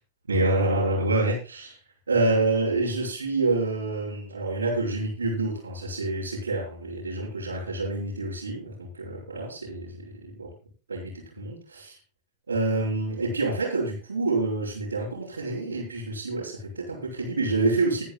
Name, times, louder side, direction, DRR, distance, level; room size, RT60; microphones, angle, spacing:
voice 1, 0.3-1.8 2.1-10.5 10.9-12.0 12.5-18.1, right 2 dB, 75° right, -8 dB, 5.3 m, -27 dB
22.0 x 10.0 x 2.4 m, 0.33 s
figure-of-eight pair, 90°, 0 cm